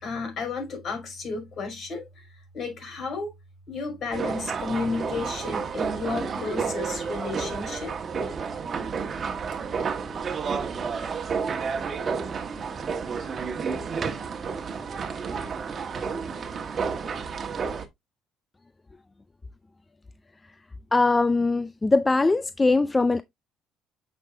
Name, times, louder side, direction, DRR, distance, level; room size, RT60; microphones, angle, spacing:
voice 1, 0.0-2.2 2.5-3.3 3.7-7.9, left 4 dB, 50° left, 5.7 m, -32 dB
sound 1, 4.1-17.9, right 5 dB, 35° right, 1.3 m, -31 dB
voice 2, 20.9-23.2, left 3 dB, 15° left, 0.4 m, -21 dB
8.8 x 5.5 x 2.6 m
cardioid pair, 115°, 0 cm